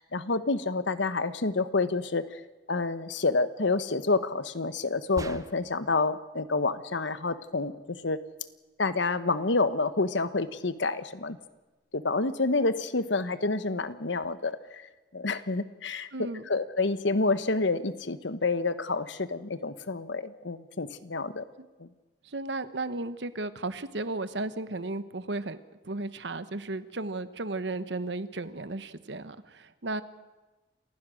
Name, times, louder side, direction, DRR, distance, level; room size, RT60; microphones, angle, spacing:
voice 1, 0.0-2.4 2.7-8.2 8.8-11.4 11.9-14.9 15.1-16.1 16.5-21.4 21.8-21.9, left 3 dB, 80° left, 13 dB, 1.1 m, -28 dB
sound 1, 5.2-5.9, right 1 dB, 20° right, 0.8 m, -40 dB
voice 2, 16.1-16.4 21.6-21.7 22.2-25.6 25.8-30.0, right 2 dB, 70° right, 13 dB, 1.1 m, -34 dB
28.5 x 15.5 x 6.3 m, 1.2 s
head